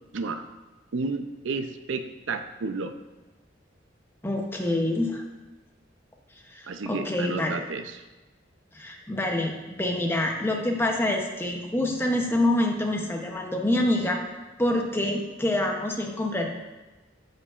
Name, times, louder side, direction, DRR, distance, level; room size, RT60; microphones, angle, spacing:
voice 1, 0.1-0.5 0.9-2.9 6.7-8.0, right 4 dB, 80° right, 8 dB, 0.5 m, -32 dB
voice 2, 4.2-5.2 6.5-7.6 8.7-14.2 14.6-16.5, left 1 dB, 10° left, 2 dB, 0.8 m, -26 dB
15.0 x 5.1 x 2.5 m, 1.2 s
head